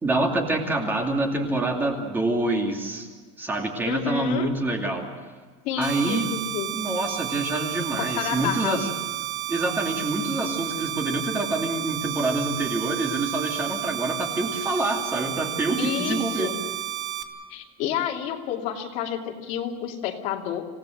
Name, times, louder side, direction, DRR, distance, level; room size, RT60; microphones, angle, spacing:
voice 1, 0.0-3.1 3.4-5.1 5.8-6.3 6.7-8.9 9.5-16.5, right 2 dB, 15° right, 1 dB, 2.6 m, -26 dB
voice 2, 3.8-4.5 5.6-6.7 8.0-8.9 15.8-16.5 17.5-20.7, left 9 dB, 50° left, 1 dB, 2.8 m, -29 dB
sound 1, 5.8-17.2, right 13 dB, 90° right, 2.4 m, -32 dB
27.0 x 17.5 x 7.9 m, 1.4 s
cardioid pair, 170°, 16 cm